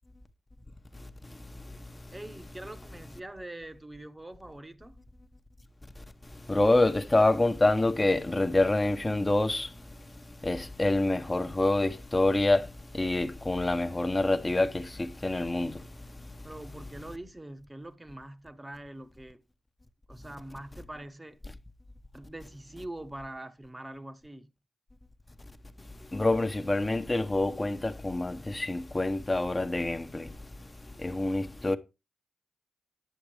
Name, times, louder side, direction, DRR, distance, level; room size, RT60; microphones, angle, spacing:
voice 1, 2.1-5.0 16.4-19.4 20.1-21.4 22.1-24.5, right 1 dB, 20° right, 1.1 m, -43 dB
voice 2, 6.5-9.7 10.4-12.7 12.9-15.8 26.1-30.3 31.0-31.8, left 2 dB, 25° left, 1.0 m, -26 dB
10.0 x 7.1 x 3.4 m
supercardioid pair, 45°, 0 cm